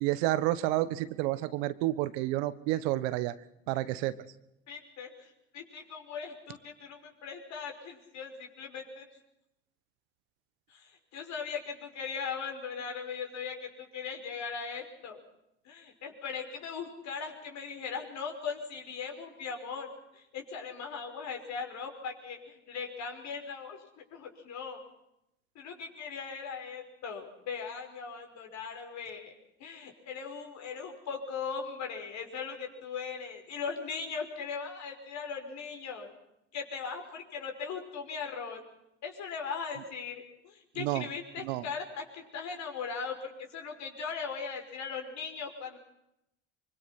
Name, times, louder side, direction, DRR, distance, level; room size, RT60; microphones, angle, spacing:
voice 1, 0.0-3.3 3.7-4.1 40.8-41.1 41.4-41.7, right 16 dB, 75° right, 14 dB, 1.3 m, -30 dB
voice 2, 4.7-9.1 10.7-15.2 15.6-24.8 25.6-29.3 29.6-36.1 36.5-38.6 39.0-45.8, left 5 dB, 55° left, 3 dB, 5.8 m, -39 dB
24.0 x 24.0 x 6.0 m, 0.84 s
hypercardioid pair, 75°, 32 cm